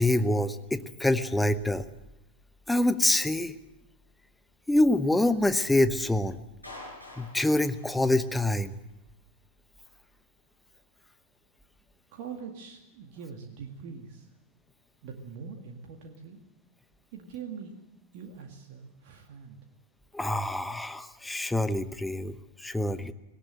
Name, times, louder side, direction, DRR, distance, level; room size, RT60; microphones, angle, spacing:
voice 1, 0.0-1.8 2.7-3.5 4.7-6.4 7.2-8.7 20.1-23.1, left 1 dB, 5° left, 12 dB, 1.0 m, -26 dB
Clapping, 6.6-8.7, left 1 dB, 85° left, 7.6 m, -47 dB
voice 2, 12.1-14.3 15.0-16.4 17.1-17.8 18.1-19.6, right 6 dB, 50° right, 3 dB, 2.0 m, -43 dB
19.0 x 18.0 x 7.7 m, 0.91 s
figure-of-eight pair, 90°, 0 cm